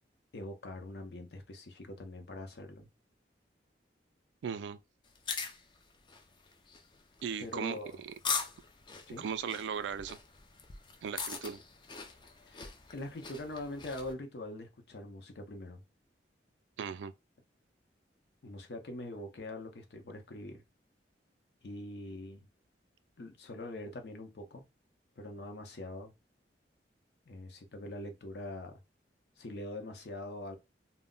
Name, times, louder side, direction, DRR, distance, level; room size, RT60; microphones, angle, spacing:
voice 1, 0.3-2.9 7.4-8.0 9.1-9.2 12.5-15.8 18.4-20.6 21.6-22.4 23.2-24.6 25.2-26.1 27.3-28.8 29.4-30.6, left 1 dB, 65° left, 0.6 m, -43 dB
voice 2, 4.4-4.8 7.2-8.1 9.2-10.2 11.0-11.6 16.8-17.1, right 7 dB, 80° right, 0.3 m, -37 dB
sound 1, 5.1-14.1, left 5 dB, 25° left, 0.4 m, -41 dB
2.1 x 2.0 x 3.7 m
head